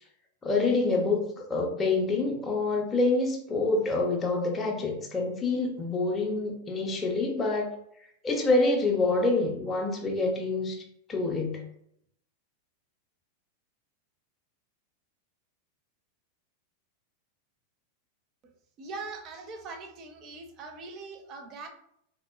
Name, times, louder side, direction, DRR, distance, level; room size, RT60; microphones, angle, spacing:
voice 1, 0.4-7.7 8.2-10.8 11.1-11.6, left 3 dB, 20° left, -1 dB, 0.5 m, -27 dB
voice 2, 18.8-21.7, right 3 dB, 35° right, 6 dB, 0.5 m, -41 dB
3.5 x 2.0 x 2.3 m, 0.73 s
figure-of-eight pair, 90°, 0 cm